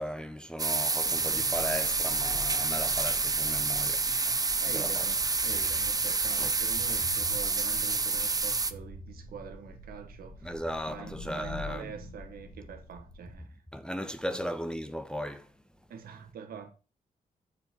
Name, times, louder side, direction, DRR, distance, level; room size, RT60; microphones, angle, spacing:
voice 1, 0.0-4.1 4.6-5.0 6.4-6.5 10.4-11.9 13.7-15.5, equal, 5° left, 0.8 m, -36 dB
sound 1, 0.6-8.7, right 3 dB, 25° right, 0.7 m, -28 dB
sound 2, 1.0-13.3, left 1 dB, 60° left, 3.4 m, -45 dB
voice 2, 4.6-10.5 10.9-13.6 14.3-14.5 15.9-16.7, right 7 dB, 85° right, 1.5 m, -45 dB
7.0 x 4.4 x 5.7 m
cardioid pair, 80°, 15 cm